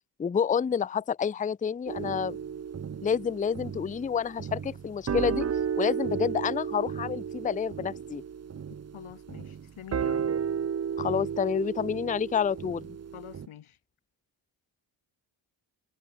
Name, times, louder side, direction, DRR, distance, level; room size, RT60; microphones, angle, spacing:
voice 1, 0.2-2.4 3.0-8.2 11.0-12.9, left 7 dB, 20° left, 0.4 m, -29 dB
sound 1, 1.9-13.5, right 7 dB, 35° right, 0.7 m, -33 dB
voice 2, 8.9-10.2 13.1-13.8, left 10 dB, 90° left, 3.2 m, -45 dB
cardioid pair, 55°, 47 cm